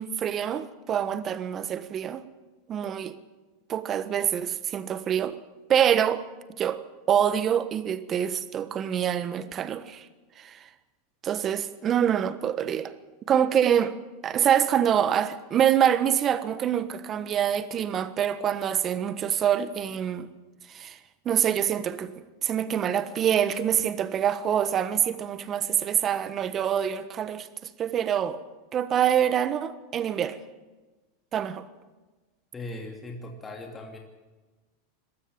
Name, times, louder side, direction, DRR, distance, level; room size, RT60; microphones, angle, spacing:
voice 1, 0.0-2.2 2.7-3.1 3.7-5.3 5.7-6.2 6.6-6.8 7.1-10.0 10.4-10.6 11.2-12.9 13.3-13.9 14.2-20.3 20.7-21.0 21.2-22.1 22.4-27.5 27.8-28.4 28.7-30.4 31.3-31.6, right 9 dB, 35° right, 1.3 m, -25 dB
voice 2, 32.5-34.0, left 2 dB, 20° left, 2.8 m, -39 dB
22.5 x 13.0 x 8.9 m
hypercardioid pair, 110°, 0 cm